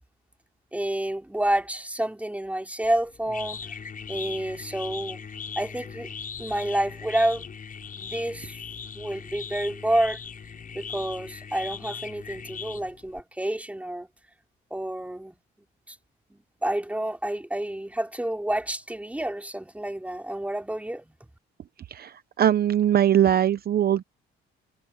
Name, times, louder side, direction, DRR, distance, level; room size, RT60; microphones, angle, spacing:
voice 1, 0.7-3.6 4.1-5.2 5.6-6.1 6.4-7.4 7.9-8.6 8.9-10.2 10.7-14.1 14.7-15.4 15.9-16.0 16.3-21.1, right 1 dB, 5° right, 4.1 m, -29 dB
sound 1, 2.8-13.2, left 6 dB, 45° left, 6.7 m, -39 dB
voice 2, 22.4-24.0, right 10 dB, 50° right, 0.7 m, -21 dB
cardioid pair, 90°, 20 cm